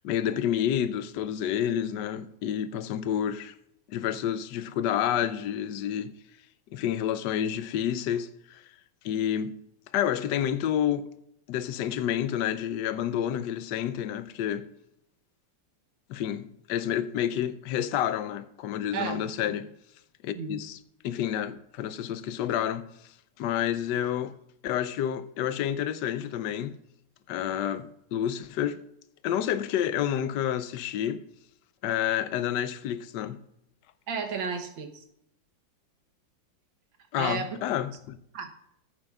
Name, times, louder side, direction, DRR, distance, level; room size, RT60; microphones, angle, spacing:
voice 1, 0.0-3.5 3.9-6.1 6.7-8.6 9.0-9.6 9.9-11.1 11.5-14.7 16.1-19.7 20.2-20.8 21.0-22.9 23.4-24.3 24.6-26.7 27.3-28.8 29.2-31.2 31.8-33.4 37.1-38.2, left 10 dB, 75° left, 1.2 m, -29 dB
voice 2, 34.1-35.0 37.2-37.6 38.3-38.6, right 6 dB, 90° right, 1.8 m, -33 dB
15.0 x 8.6 x 2.4 m
omnidirectional pair, 2.0 m